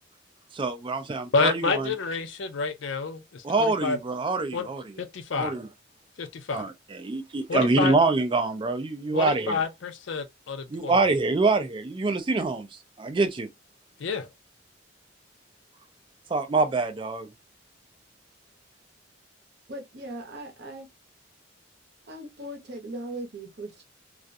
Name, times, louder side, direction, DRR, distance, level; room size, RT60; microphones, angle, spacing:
voice 1, 0.5-1.9 3.4-4.8 5.4-5.7 6.5-9.6 10.7-12.7 13.0-13.5 16.3-17.3, right 3 dB, 25° right, 0.4 m, -25 dB
voice 2, 1.3-4.0 4.5-4.7 5.0-5.5 6.2-6.7 7.5-8.0 9.1-11.0 14.0-14.3, left 4 dB, 65° left, 0.5 m, -29 dB
voice 3, 19.7-20.9 22.1-23.9, right 1 dB, 55° right, 0.8 m, -38 dB
2.4 x 2.1 x 2.6 m
head